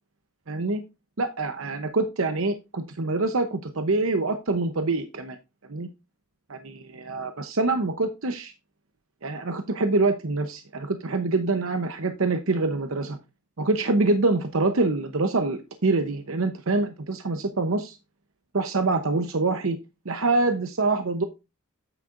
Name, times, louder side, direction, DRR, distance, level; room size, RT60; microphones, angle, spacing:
voice 1, 0.5-0.8 1.2-5.4 5.7-5.9 6.5-8.5 9.2-13.2 13.6-18.0 18.5-19.8 20.0-21.2, right 3 dB, 65° right, 8 dB, 0.8 m, -25 dB
9.0 x 8.3 x 2.5 m, 0.25 s
head